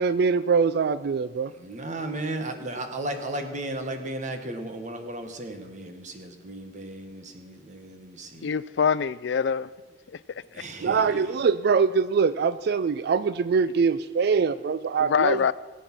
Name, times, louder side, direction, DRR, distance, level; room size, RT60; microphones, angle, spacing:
voice 1, 0.0-1.5 10.8-15.5, right 5 dB, 60° right, 0.4 m, -23 dB
voice 2, 1.5-8.5 10.5-11.3, right 1 dB, 45° right, 1.5 m, -35 dB
voice 3, 8.4-9.7 10.1-10.6 15.0-15.5, left 6 dB, 75° left, 0.4 m, -25 dB
18.5 x 8.3 x 6.1 m
head